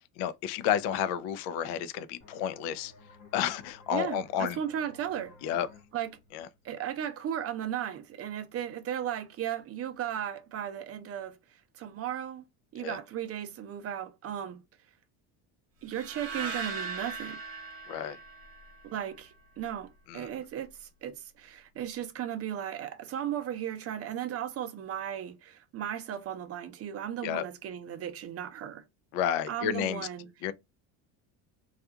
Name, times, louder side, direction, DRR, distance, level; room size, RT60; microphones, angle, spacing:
voice 1, 0.2-2.9 3.3-4.6 5.4-5.7 6.3-6.5 12.8-13.0 17.9-18.2 20.1-20.3 27.2-27.5 29.1-30.1 30.4-30.5, left 9 dB, 75° left, 0.5 m, -31 dB
sound 1, 2.2-7.6, left 3 dB, 50° left, 1.0 m, -56 dB
voice 2, 3.9-5.4 5.9-6.1 6.6-12.4 12.7-14.6 15.8-17.4 18.8-28.8 29.5-30.3, right 10 dB, 40° right, 0.5 m, -36 dB
sound 2, 15.9-19.1, right 4 dB, 60° right, 0.9 m, -39 dB
2.4 x 2.3 x 2.7 m
supercardioid pair, 110°, 39 cm